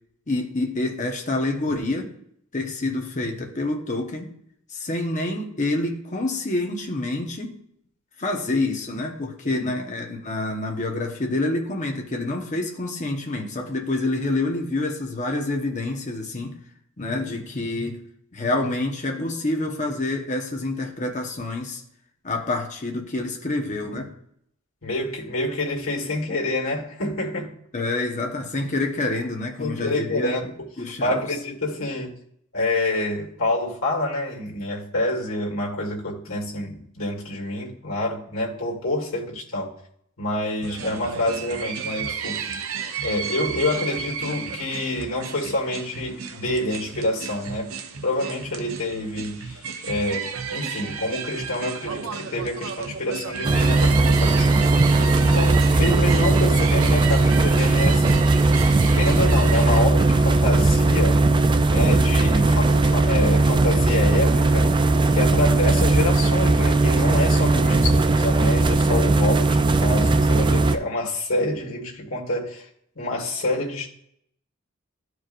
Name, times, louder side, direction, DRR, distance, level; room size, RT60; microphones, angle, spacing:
voice 1, 0.3-2.1 2.5-4.3 4.7-7.6 8.2-16.6 17.0-18.0 18.3-21.8 22.2-24.1 27.7-31.2 67.5-67.9, left 2 dB, 35° left, 1 dB, 1.1 m, -27 dB
voice 2, 24.8-27.5 29.6-30.5 31.0-32.1 32.5-39.7 40.2-42.4 43.0-47.7 48.0-54.8 55.2-58.3 58.8-61.2 61.7-64.7 65.1-72.7 73.0-73.9, left 1 dB, 70° left, -2 dB, 1.9 m, -27 dB
sound 1, 40.6-59.8, right 6 dB, 85° right, 0.7 m, -32 dB
sound 2, 53.4-70.8, right 2 dB, 20° right, 0.3 m, -18 dB
12.5 x 4.8 x 2.6 m, 0.71 s
head